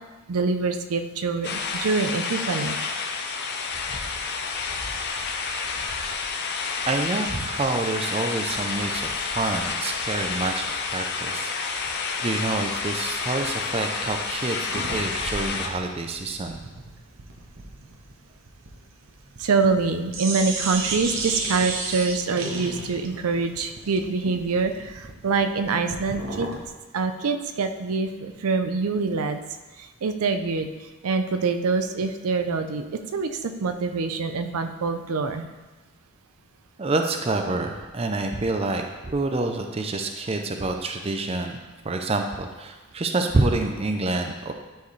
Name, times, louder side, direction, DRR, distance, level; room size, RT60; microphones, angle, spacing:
voice 1, 0.3-2.8 19.4-26.5 26.9-29.4 29.8-30.7 31.0-35.5, right 4 dB, 80° right, 8 dB, 0.5 m, -25 dB
sound 1, 1.4-15.7, left 5 dB, 50° left, 0.7 m, -29 dB
voice 2, 6.9-11.9 12.2-16.6 36.8-41.6 41.8-44.5, right 2 dB, 25° right, 5 dB, 0.5 m, -27 dB
sound 2, 14.7-19.8 20.1-26.7, right 3 dB, 60° right, 0.9 m, -34 dB
11.5 x 4.6 x 3.2 m, 1.2 s
head